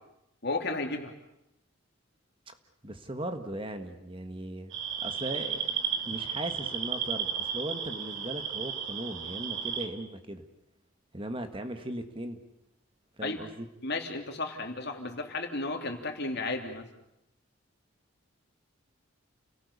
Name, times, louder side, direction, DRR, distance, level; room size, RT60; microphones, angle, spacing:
voice 1, 0.4-1.1 13.2-13.4 13.8-16.9, left 2 dB, 55° left, 4 dB, 3.2 m, -33 dB
voice 2, 2.8-5.6 6.1-10.4 11.1-12.4 13.2-13.7, right 1 dB, 25° right, 7 dB, 1.6 m, -38 dB
sound 1, 4.7-9.9, right 7 dB, 75° right, 2.9 m, -34 dB
29.5 x 18.0 x 8.3 m, 0.83 s
head